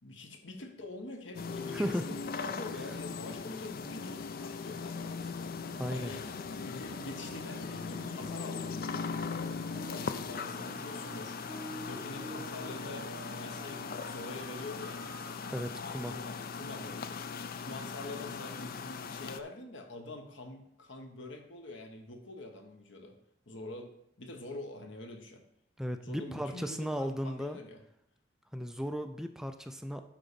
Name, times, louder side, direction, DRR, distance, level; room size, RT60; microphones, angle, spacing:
voice 1, 0.0-5.1 5.9-6.3 6.6-8.9 9.8-11.4 11.8-15.1 16.1-17.1 17.6-23.2 23.5-25.4 26.0-27.8, left 2 dB, 75° left, 5 dB, 1.3 m, -45 dB
sound 1, 1.3-19.4, left 5 dB, 50° left, 0.5 m, -39 dB
voice 2, 1.7-2.1 5.8-6.1 15.5-16.1 25.8-27.6 28.5-30.0, equal, 5° right, 7 dB, 0.4 m, -35 dB
sound 2, 6.8-15.5, right 1 dB, 65° right, 3.6 m, -49 dB
9.0 x 3.9 x 6.8 m, 0.76 s
head